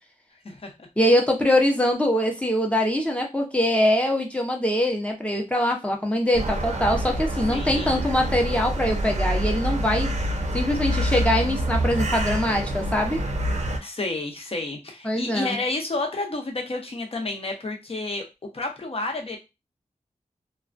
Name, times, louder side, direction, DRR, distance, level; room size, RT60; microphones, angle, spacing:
voice 1, 1.0-10.1 10.5-13.2 15.0-15.6, left 1 dB, 10° left, 1 dB, 0.7 m, -23 dB
sound 1, 6.3-13.8, right 1 dB, 60° right, 0.6 m, -26 dB
voice 2, 7.5-8.0 13.8-18.2 18.5-19.4, left 2 dB, 45° left, 2 dB, 0.7 m, -30 dB
2.2 x 2.2 x 2.5 m, 0.25 s
wide cardioid pair, 55°, 13 cm